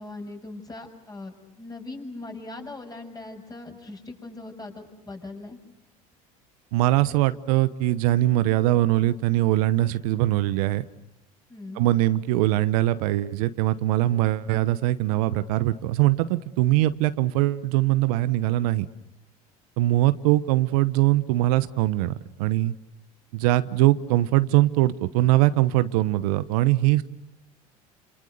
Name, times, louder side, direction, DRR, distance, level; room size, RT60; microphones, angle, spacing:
voice 1, 0.0-5.6 11.5-11.9, left 2 dB, 20° left, 3 dB, 7.0 m, -40 dB
voice 2, 6.7-10.8 11.8-18.9 19.8-22.1 22.4-22.7 23.3-27.0, right 16 dB, 75° right, 15 dB, 1.0 m, -22 dB
28.5 x 27.5 x 6.7 m, 0.85 s
hypercardioid pair, 80°, 19 cm